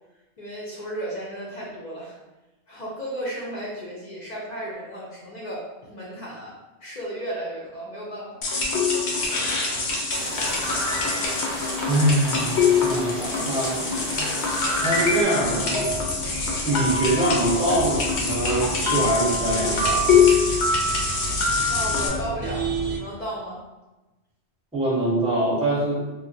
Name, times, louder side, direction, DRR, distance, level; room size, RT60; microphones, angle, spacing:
voice 1, 0.4-2.2 2.7-6.5 6.8-8.5 21.7-23.6, right 1 dB, 50° left, -6 dB, 0.6 m, -34 dB
sound 1, 8.4-22.1, left 4 dB, 80° left, 0.9 m, -24 dB
sound 2, 10.1-15.2, right 2 dB, 60° right, 0.7 m, -36 dB
voice 2, 11.9-14.3 14.8-15.9 16.6-20.4 24.7-26.0, right 1 dB, 5° right, -6 dB, 0.6 m, -24 dB
sound 3, 15.4-23.0, right 2 dB, 90° right, 0.9 m, -33 dB
2.9 x 2.0 x 2.6 m, 1.1 s
omnidirectional pair, 1.1 m